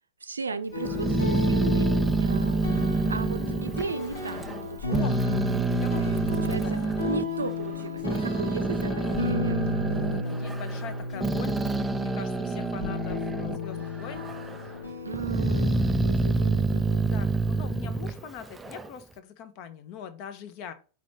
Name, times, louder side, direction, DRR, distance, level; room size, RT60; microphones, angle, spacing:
voice 1, 0.2-1.9 2.2-2.6 3.1-5.0 6.3-9.6 15.0-17.1, right 4 dB, 75° right, 0.4 m, -36 dB
sound 1, 0.7-15.8, left 3 dB, 75° left, 1.3 m, -33 dB
Growling, 0.8-4.6 4.9-7.2 7.8-13.6 14.0-14.7 15.1-18.9, right 3 dB, 10° right, 0.4 m, -27 dB
voice 2, 4.9-6.8 8.9-9.2 9.7-11.6 11.9-14.3 14.6-15.0 17.0-20.7, left 7 dB, 45° left, 0.7 m, -42 dB
5.0 x 2.9 x 3.4 m
figure-of-eight pair, 90°, 0 cm